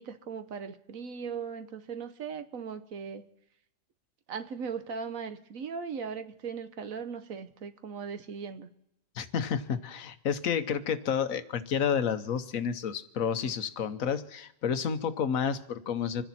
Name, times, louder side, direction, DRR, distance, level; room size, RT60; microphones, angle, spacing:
voice 1, 0.0-3.2 4.3-8.7, right 6 dB, 85° right, 10 dB, 1.5 m, -38 dB
voice 2, 9.2-16.2, left 7 dB, 85° left, 11 dB, 1.4 m, -30 dB
27.0 x 10.5 x 4.2 m, 0.81 s
omnidirectional pair, 1.4 m